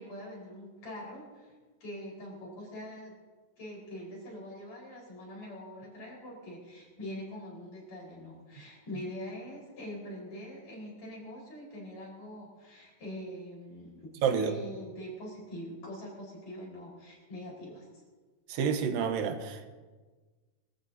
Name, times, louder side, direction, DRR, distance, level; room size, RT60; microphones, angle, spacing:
voice 1, 0.0-1.5 1.8-3.1 3.6-17.9, equal, 55° left, -3 dB, 5.9 m, -43 dB
voice 2, 14.2-14.5 18.5-19.7, right 7 dB, 85° right, 8 dB, 2.7 m, -29 dB
24.0 x 14.0 x 2.8 m, 1.4 s
omnidirectional pair, 3.9 m